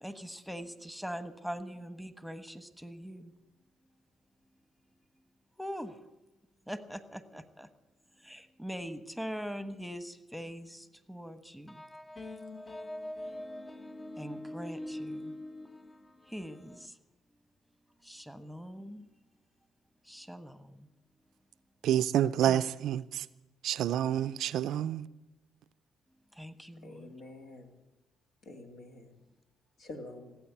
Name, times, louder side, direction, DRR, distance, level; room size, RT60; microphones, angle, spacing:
voice 1, 0.0-3.3 5.6-5.9 6.7-7.7 8.2-11.8 14.2-15.3 16.3-16.9 18.0-19.0 20.1-20.9 22.5-22.6 26.4-27.1, equal, ahead, 1.3 m, -42 dB
sound 1, 11.7-16.9, left 1 dB, 30° left, 1.0 m, -43 dB
voice 2, 21.8-23.3 23.6-25.1, right 11 dB, 75° right, 0.4 m, -28 dB
voice 3, 26.8-27.8 28.4-29.2 29.8-30.4, left 2 dB, 70° left, 2.4 m, -47 dB
17.0 x 8.6 x 8.5 m
supercardioid pair, 55°, 0 cm